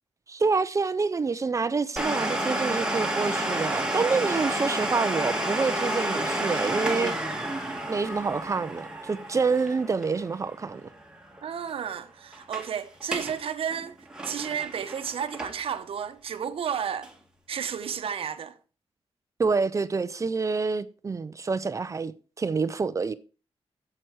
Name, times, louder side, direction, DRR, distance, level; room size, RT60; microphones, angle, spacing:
voice 1, 0.3-7.2 7.9-10.9 19.4-22.1 22.4-23.1, right 4 dB, 30° right, 0.5 m, -27 dB
Domestic sounds home sounds, 2.0-11.4 11.6-11.7 12.3-12.7 13.0-13.4 13.7-15.8 16.3-16.4 17.0-17.1, right 1 dB, 10° right, 1.7 m, -30 dB
voice 2, 11.4-14.0 14.2-17.1 17.5-18.6, right 8 dB, 70° right, 1.0 m, -32 dB
9.1 x 7.7 x 4.7 m
wide cardioid pair, 135°, 10 cm